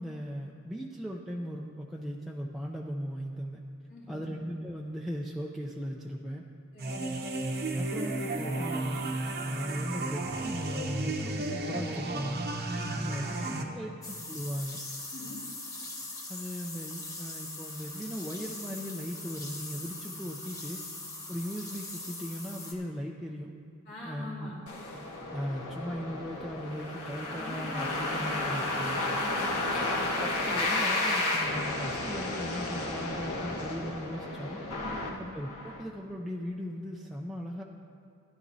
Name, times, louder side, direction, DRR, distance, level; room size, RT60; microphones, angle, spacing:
voice 1, 0.0-3.6 4.1-6.4 7.8-9.0 9.4-12.4 12.9-13.3 13.7-14.8 16.3-20.8 21.3-23.5 24.1-24.5 25.3-29.0 30.4-34.6 35.2-37.6, equal, ahead, -2 dB, 0.5 m, -38 dB
voice 2, 3.9-4.4 6.7-7.3 12.7-14.0 15.1-15.4 23.9-24.6 27.3-30.4 34.8-35.3, left 1 dB, 50° left, -7 dB, 2.6 m, -45 dB
sound 1, 6.8-13.6, right 2 dB, 45° right, 0.8 m, -33 dB
sound 2, 14.0-22.7, left 2 dB, 15° left, 1.1 m, -41 dB
sound 3, 24.7-35.8, left 2 dB, 70° left, 1.4 m, -32 dB
16.0 x 11.0 x 2.7 m, 2.3 s
head